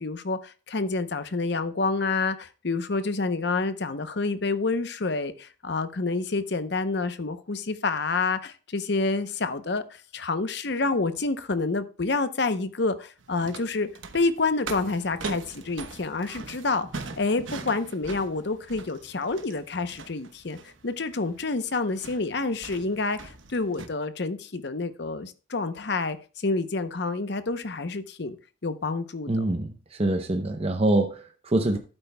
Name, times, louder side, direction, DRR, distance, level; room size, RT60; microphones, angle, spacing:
voice 1, 0.0-13.9 14.1-16.9 17.2-20.6 20.8-28.4 28.6-29.4, left 3 dB, 60° left, 0.7 m, -28 dB
sound 1, 13.2-23.9, right 4 dB, 80° right, 1.0 m, -41 dB
voice 2, 29.3-31.8, right 1 dB, 30° right, 0.7 m, -25 dB
12.0 x 8.8 x 2.2 m
head